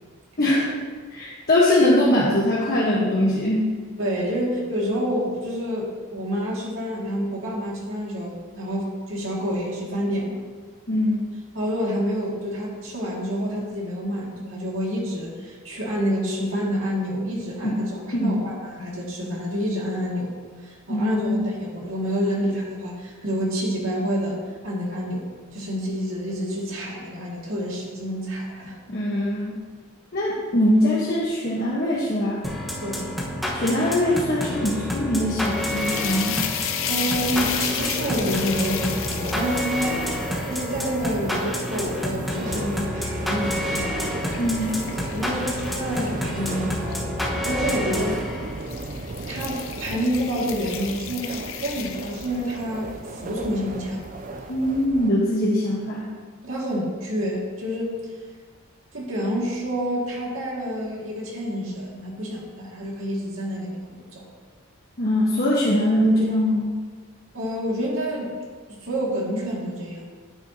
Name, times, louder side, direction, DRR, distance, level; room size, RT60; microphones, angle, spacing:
voice 1, 1.1-3.6 10.9-11.3 17.6-17.7 18.1-18.4 20.9-21.5 28.9-29.6 30.1-32.4 33.5-36.4 44.4-44.7 54.5-56.1 65.0-66.7, left 1 dB, 45° left, -6 dB, 1.2 m, -22 dB
voice 2, 4.0-10.4 11.5-28.8 32.8-33.1 36.9-40.0 40.4-43.9 44.6-44.7 45.1-48.2 49.3-54.0 56.4-58.1 58.9-64.2 67.3-68.4 68.7-70.1, equal, 70° right, -4 dB, 2.2 m, -28 dB
sound 1, 32.4-48.7, left 1 dB, ahead, 1.3 m, -29 dB
sound 2, 35.3-42.5 43.0-47.0 47.9-48.2 48.6-52.8, left 9 dB, 70° left, 0.7 m, -34 dB
sound 3, 37.1-55.1, right 2 dB, 40° right, 0.5 m, -35 dB
9.4 x 9.1 x 2.9 m, 1.5 s
head